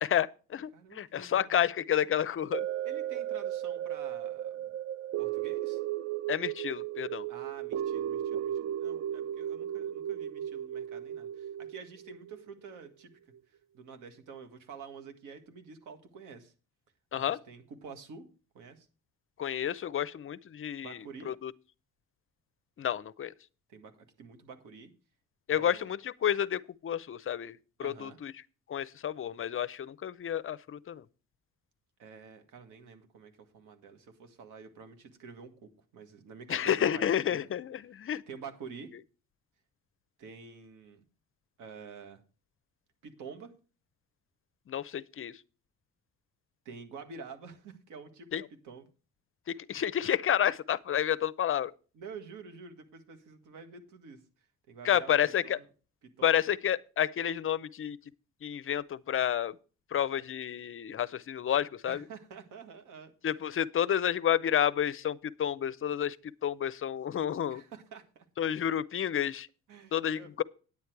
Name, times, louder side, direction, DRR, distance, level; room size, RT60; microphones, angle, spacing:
voice 1, 0.0-2.7 6.3-7.2 17.1-17.4 19.4-21.5 22.8-23.3 25.5-28.3 28.7-31.0 36.5-38.2 44.7-45.3 48.3-48.4 49.5-51.7 54.8-55.6 56.2-58.0 58.4-59.5 59.9-62.0 63.2-66.2 66.4-67.6 68.4-69.5 69.9-70.4, left 9 dB, 45° left, 0.6 m, -30 dB
voice 2, 0.7-1.5 2.8-4.7 5.2-5.8 7.3-13.1 13.5-16.5 17.1-18.2 18.5-18.9 20.8-21.3 23.7-24.9 25.5-25.9 27.8-28.2 32.0-37.4 37.9-38.9 40.2-41.0 41.6-42.2 43.0-43.5 46.6-48.9 51.9-54.2 54.7-55.2 55.4-55.7 56.0-56.3 61.9-63.1 67.5-68.3 69.7-70.3, right 5 dB, 90° right, 1.8 m, -48 dB
sound 1, 2.5-12.9 13.3-13.4, right 11 dB, 55° right, 0.5 m, -35 dB
9.7 x 8.2 x 4.6 m
cardioid pair, 90°, 30 cm